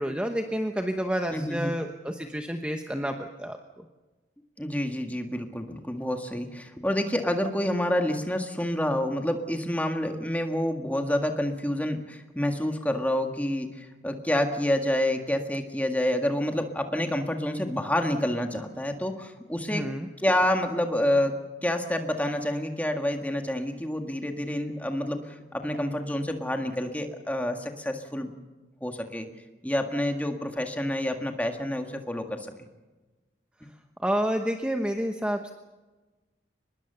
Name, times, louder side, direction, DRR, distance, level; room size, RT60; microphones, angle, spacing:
voice 1, 0.0-3.8 19.7-20.1 34.0-35.5, equal, 5° right, 4 dB, 1.0 m, -29 dB
voice 2, 1.3-1.7 4.6-19.8 20.2-21.3 21.6-28.3 28.8-29.3 29.6-32.5, left 1 dB, 10° left, 4 dB, 1.8 m, -28 dB
23.5 x 20.5 x 6.9 m, 1.2 s
head